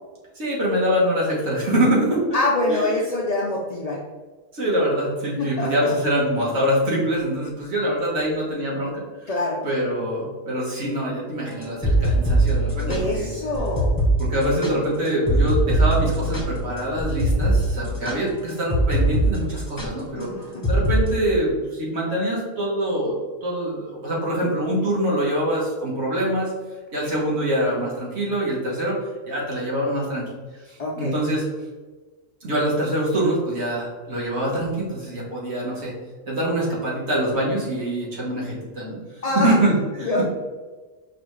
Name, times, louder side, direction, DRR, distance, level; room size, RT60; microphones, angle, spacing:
voice 1, 0.3-2.2 2.7-2.9 4.5-9.3 9.6-13.3 14.2-20.3 20.7-23.1 23.4-26.5 26.9-29.0 29.2-30.2 30.7-31.4 32.4-35.9 36.3-39.0 39.3-40.2, right 1 dB, 55° right, -5 dB, 1.5 m, -24 dB
voice 2, 2.3-4.0 5.4-5.9 9.3-9.6 12.9-13.9 20.2-20.8 27.5-27.7 30.8-31.2 39.2-39.5 40.0-40.2, left 2 dB, 85° left, -2 dB, 0.3 m, -25 dB
sound 1, 11.6-19.3 19.6-19.9 20.6-21.0, right 1 dB, 25° left, 0.5 m, -21 dB
4.9 x 2.4 x 3.1 m, 1.3 s
omnidirectional pair, 1.3 m